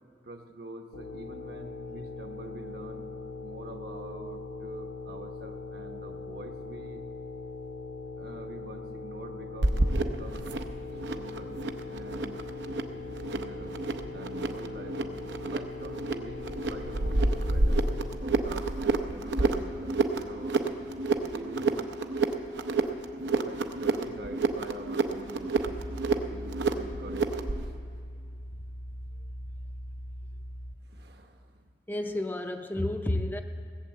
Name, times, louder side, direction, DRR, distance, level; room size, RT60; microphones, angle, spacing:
voice 1, 0.2-3.0 3.4-7.0 8.2-10.4 11.1-11.6 11.9-12.4 13.3-13.7 14.1-17.9 18.2-20.6 21.1-21.9 23.4-25.8 26.1-28.0 30.8-31.6, right 2 dB, 65° right, 5 dB, 1.1 m, -45 dB
sound 1, 0.9-18.1, left 3 dB, 80° left, 1.0 m, -41 dB
sound 2, 9.6-27.6, right 3 dB, 85° right, 0.7 m, -30 dB
sound 3, 25.7-30.8, equal, 50° left, 0.9 m, -40 dB
voice 2, 31.9-33.4, left 1 dB, 10° left, 5 dB, 0.4 m, -31 dB
17.5 x 7.9 x 7.4 m, 2.3 s
head